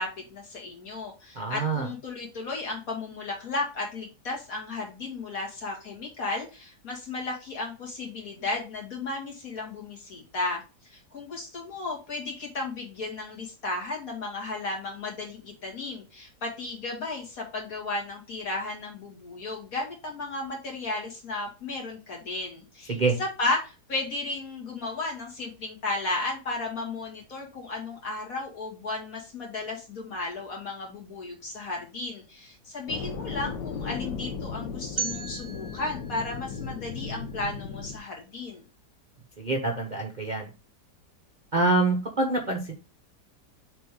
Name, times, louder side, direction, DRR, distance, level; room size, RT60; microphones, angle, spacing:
voice 1, 0.0-38.6, left 2 dB, 55° left, -1 dB, 2.6 m, -34 dB
voice 2, 1.4-1.9 22.9-23.2 39.4-40.5 41.5-42.7, right 3 dB, 35° right, 2 dB, 0.8 m, -26 dB
sound 1, 32.9-38.0, left 5 dB, 85° left, 1.5 m, -36 dB
sound 2, 35.0-37.9, right 5 dB, 85° right, 0.4 m, -38 dB
6.7 x 3.8 x 4.8 m, 0.32 s
omnidirectional pair, 1.8 m